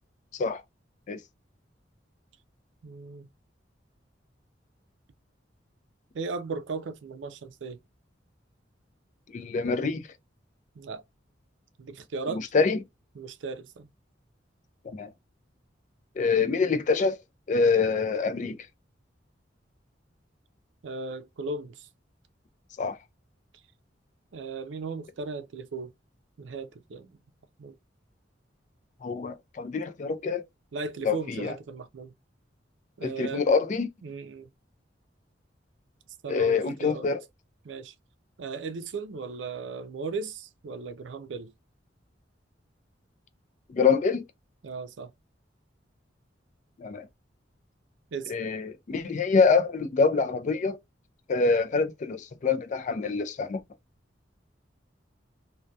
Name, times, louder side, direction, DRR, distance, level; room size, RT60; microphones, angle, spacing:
voice 1, 2.8-3.3 6.1-7.8 10.8-11.0 11.8-12.4 13.2-13.9 20.8-21.9 24.3-25.9 26.4-27.2 27.6-27.8 30.7-32.1 33.0-33.4 34.0-34.5 36.2-37.1 37.6-37.9 38.4-41.5 44.6-45.1 48.1-48.3, right 4 dB, 80° right, 0.4 m, -36 dB
voice 2, 9.3-10.1 12.3-12.8 14.8-15.1 16.2-17.2 17.5-18.6 22.8-23.0 29.0-30.4 31.0-31.6 33.0-33.9 36.3-37.2 43.7-44.2 46.8-47.1 48.3-50.8 51.3-53.6, left 4 dB, 40° left, 0.4 m, -25 dB
2.2 x 2.2 x 2.6 m
head